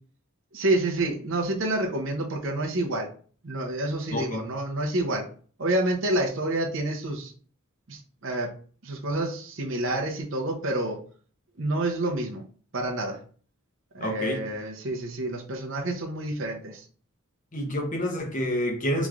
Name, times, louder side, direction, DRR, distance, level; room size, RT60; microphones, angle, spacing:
voice 1, 0.5-3.1 3.4-5.3 5.6-7.3 7.9-8.5 8.8-11.0 11.6-12.4 12.7-13.2 13.9-16.8, right 1 dB, 65° right, 0.7 m, -28 dB
voice 2, 4.1-4.4 14.0-14.4 17.5-19.1, equal, 35° left, 0.9 m, -28 dB
4.9 x 3.0 x 2.4 m
head